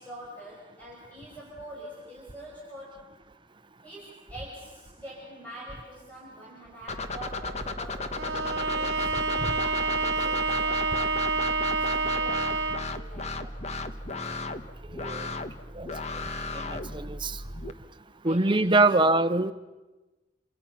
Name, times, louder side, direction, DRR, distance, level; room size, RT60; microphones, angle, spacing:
voice 1, 0.0-3.1 3.8-11.2 11.7-13.6 18.2-19.2, equal, 10° left, -6 dB, 6.2 m, -45 dB
sound 1, 6.9-17.7, left 2 dB, 40° left, 1.3 m, -35 dB
Bowed string instrument, 8.2-13.0, right 4 dB, 85° right, 1.2 m, -28 dB
voice 2, 14.9-15.3 15.7-15.9 16.5-17.4 18.2-19.5, right 2 dB, 30° right, 11 dB, 0.9 m, -24 dB
28.5 x 26.5 x 5.9 m, 1.2 s
head